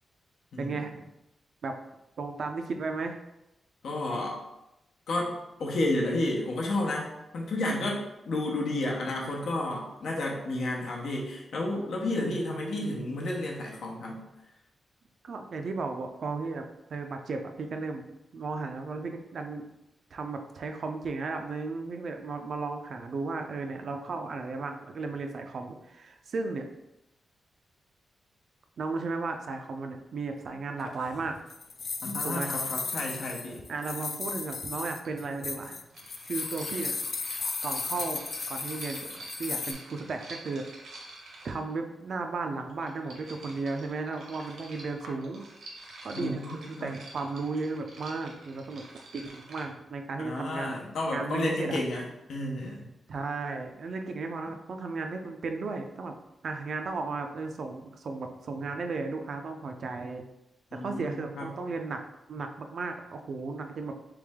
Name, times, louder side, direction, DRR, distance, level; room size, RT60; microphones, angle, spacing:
voice 1, 0.6-1.1 1.6-1.7 2.2-3.2 12.1-13.2 15.2-16.6 16.9-19.7 20.1-26.7 28.8-31.4 32.2-32.5 33.7-35.8 36.2-36.9 37.6-39.0 39.4-41.0 41.4-45.5 46.0-48.9 49.1-50.8 51.1-51.8 53.1-56.1 56.4-60.3 60.7-62.0 62.3-64.0, right 3 dB, 60° right, 5 dB, 0.4 m, -35 dB
voice 2, 3.8-4.4 5.1-5.3 5.6-14.2 32.0-33.6 46.2-46.9 50.2-52.9 60.7-61.5, left 1 dB, 75° left, -1 dB, 0.9 m, -31 dB
sound 1, 30.8-39.7, left 4 dB, 50° left, 0.4 m, -35 dB
sound 2, 35.0-35.1 35.9-41.8 42.7-49.7, right 2 dB, 75° right, 0.9 m, -47 dB
3.4 x 3.1 x 3.5 m, 0.90 s
cardioid pair, 110°, 0 cm